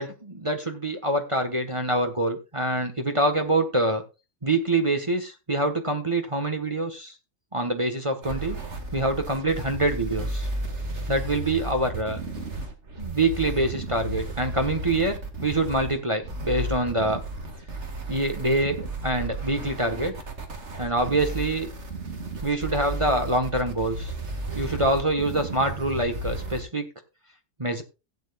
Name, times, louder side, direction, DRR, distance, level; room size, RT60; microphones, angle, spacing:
voice 1, 0.0-4.0 4.4-7.1 7.5-8.6 8.9-10.5 11.1-12.2 13.0-17.2 18.1-20.1 20.8-21.7 22.4-24.1 24.5-26.9 27.6-27.8, right 2 dB, 25° right, 5 dB, 1.4 m, -25 dB
sound 1, 8.2-26.6, right 2 dB, 60° right, 2.3 m, -33 dB
16.5 x 9.3 x 2.4 m, 0.27 s
omnidirectional pair, 1.3 m